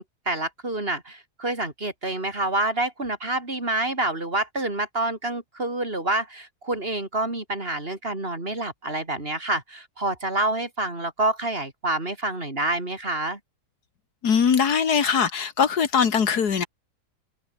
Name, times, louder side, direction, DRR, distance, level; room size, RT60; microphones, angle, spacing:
voice 1, 0.0-13.4, right 2 dB, 35° right, 4.1 m, -27 dB
voice 2, 14.2-16.7, left 6 dB, 75° left, 2.2 m, -21 dB
omnidirectional pair, 1.7 m